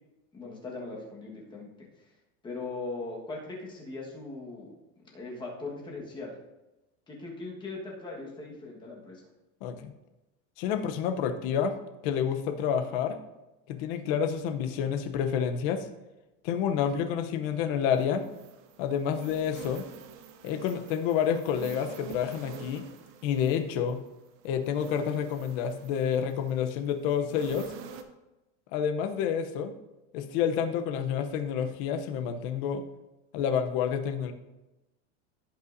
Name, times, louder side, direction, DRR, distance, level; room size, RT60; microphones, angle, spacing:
voice 1, 0.3-1.7 2.4-4.7 5.1-6.3 7.1-9.2, left 3 dB, 15° left, -3 dB, 1.5 m, -39 dB
voice 2, 9.6-9.9 10.6-11.7 12.0-13.2 13.7-15.9 16.4-18.3 18.8-19.8 20.4-22.9 23.2-24.0 24.4-27.7 28.7-29.7 30.1-32.8 33.3-34.3, left 8 dB, 50° left, 7 dB, 0.8 m, -29 dB
sound 1, 17.9-28.0, right 7 dB, 40° right, 0.7 m, -47 dB
16.0 x 5.5 x 2.7 m, 0.99 s
supercardioid pair, 175°, 35 cm